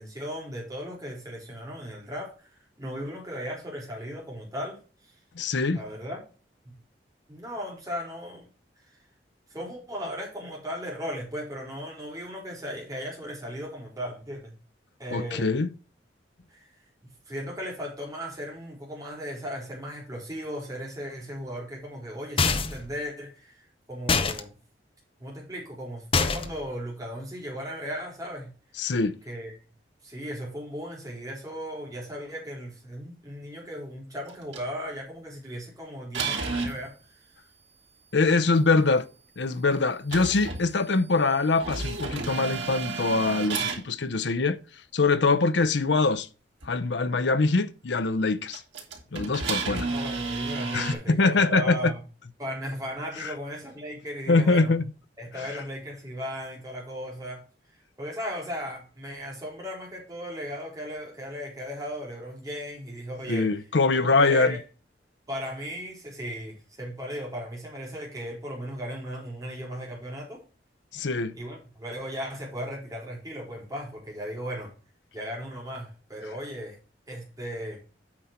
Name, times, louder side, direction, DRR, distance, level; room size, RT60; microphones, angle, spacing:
voice 1, 0.0-4.8 5.0-5.1 5.7-6.2 6.6-6.7 7.3-8.5 9.5-14.5 15.0-15.5 16.5-16.7 17.3-24.5 25.2-28.5 29.2-29.5 30.0-37.2 49.8-52.0 52.4-54.7 55.2-57.4 58.0-63.5 64.0-64.6 65.3-70.4 71.3-74.7 75.1-76.8 77.1-77.8, equal, 20° right, 4.1 m, -36 dB
voice 2, 5.3-5.8 15.1-15.7 28.8-29.1 38.1-39.1 39.4-44.6 44.9-46.3 46.7-48.6 49.1-49.9 50.7-51.9 53.2-53.3 54.3-54.8 63.3-64.6 70.9-71.4, left 3 dB, 75° left, 0.7 m, -23 dB
sound 1, 22.4-22.9 24.1-24.4 26.1-26.6, left 4 dB, 30° left, 0.7 m, -24 dB
sound 2, 34.3-34.6 36.1-36.8 40.1-43.8 46.6-46.7 48.5-51.0, right 4 dB, 85° right, 3.1 m, -32 dB
8.9 x 5.7 x 4.4 m
head